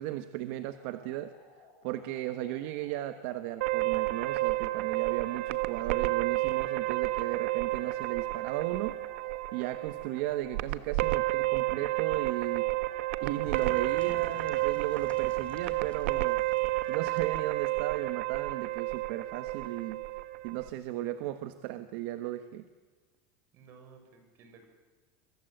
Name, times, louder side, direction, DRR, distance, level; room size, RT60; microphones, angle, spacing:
voice 1, 0.0-1.3 1.8-9.0 9.5-12.7 13.2-16.4 16.9-20.0 20.4-22.6, right 14 dB, 60° right, 10 dB, 1.3 m, -35 dB
sound 1, 0.6-16.3, left 4 dB, 50° left, 6.0 m, -58 dB
sound 2, 3.6-20.7, right 19 dB, 80° right, 1.2 m, -31 dB
sound 3, 13.4-17.8, left 4 dB, 15° left, 3.1 m, -52 dB
voice 2, 23.5-24.7, right 5 dB, 40° right, 5 dB, 7.0 m, -55 dB
28.5 x 23.5 x 8.1 m, 1.4 s
supercardioid pair, 165°, 7 cm